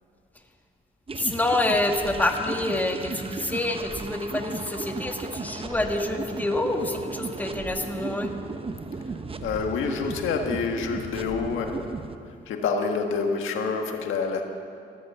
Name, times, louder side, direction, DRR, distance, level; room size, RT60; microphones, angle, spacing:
voice 1, 1.1-8.3, left 2 dB, 10° left, 3 dB, 1.5 m, -27 dB
sound 1, 1.1-12.2, right 4 dB, 30° right, 0.9 m, -35 dB
voice 2, 9.4-12.1 12.5-14.4, left 5 dB, 80° left, 3 dB, 1.6 m, -27 dB
15.0 x 13.5 x 6.8 m, 2.4 s
cardioid pair, 90°, 20 cm